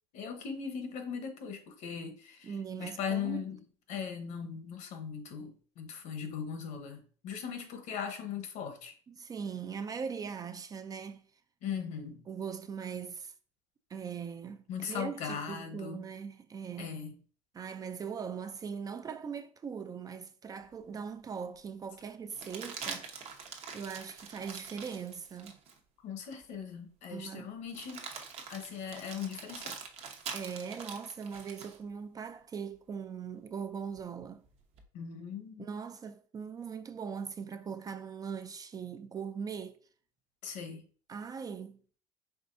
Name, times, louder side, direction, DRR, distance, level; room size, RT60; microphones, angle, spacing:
voice 1, 0.1-3.6 3.9-8.9 11.6-12.2 14.7-16.1 16.8-17.2 26.0-28.1 28.5-29.8 34.9-35.7 40.4-40.8, left 7 dB, 65° left, 0.9 m, -39 dB
voice 2, 2.4-3.4 9.1-11.2 12.3-13.3 13.9-17.0 17.5-23.3 23.7-25.6 27.1-27.5 30.3-34.4 35.6-39.8 41.1-41.8, right 6 dB, 25° right, 0.3 m, -40 dB
sound 1, 20.7-20.8 22.3-25.8 26.3-26.4 27.7-31.8 34.0-34.8, right 5 dB, 50° right, 0.9 m, -44 dB
4.9 x 3.4 x 2.6 m
supercardioid pair, 105°, 14 cm